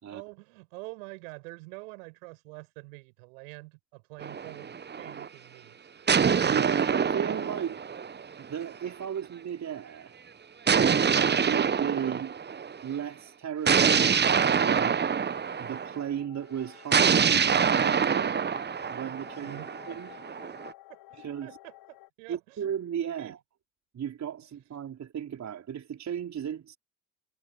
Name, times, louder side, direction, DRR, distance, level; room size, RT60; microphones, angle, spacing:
voice 1, 0.0-6.1 7.6-7.7 19.4-19.7 20.9-22.6 23.2-23.3, right 29 dB, 65° right, 7.7 m, -46 dB
sound 1, 4.2-5.3 6.1-8.7 10.7-12.8 13.7-16.0 16.9-20.7, right 6 dB, 25° right, 1.3 m, -25 dB
voice 2, 6.4-7.8 8.4-10.1 11.1-12.3 12.8-15.0 15.6-18.4 18.9-19.6 19.9-20.1 21.1-21.6 22.3-23.4 23.9-26.8, right 9 dB, 40° right, 4.7 m, -35 dB
sound 2, 15.0-22.1, left 17 dB, 55° left, 4.9 m, -52 dB
figure-of-eight pair, 55°, 42 cm